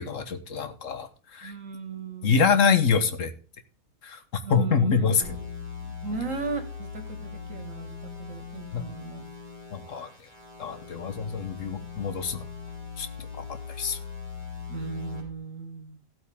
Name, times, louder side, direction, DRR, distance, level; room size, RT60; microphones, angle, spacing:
voice 1, 0.0-1.5 2.2-3.3 4.0-4.2 4.5-5.3 8.7-8.8 9.7-10.1 10.6-12.5 13.0-13.1 13.4-13.5 13.8-14.0, left 6 dB, 65° left, 10 dB, 1.5 m, -25 dB
voice 2, 1.4-2.7 4.4-5.4 5.8-9.3 14.7-16.0, right 5 dB, 65° right, 8 dB, 2.3 m, -36 dB
sound 1, 5.2-15.2, left 6 dB, 40° left, 5.3 m, -40 dB
15.5 x 8.7 x 3.6 m, 0.36 s
omnidirectional pair, 1.5 m